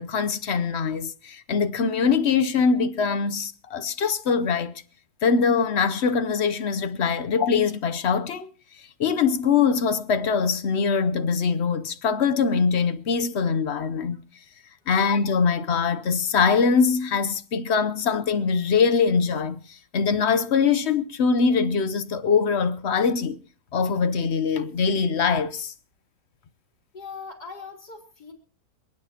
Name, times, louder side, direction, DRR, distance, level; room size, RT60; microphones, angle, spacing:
voice 1, 0.0-4.8 5.2-8.5 9.0-14.2 14.9-23.4 23.7-25.7, left 5 dB, 55° left, 0.8 m, -23 dB
voice 2, 26.9-28.3, left 5 dB, 70° left, 4.1 m, -40 dB
26.5 x 9.5 x 2.9 m
omnidirectional pair, 1.8 m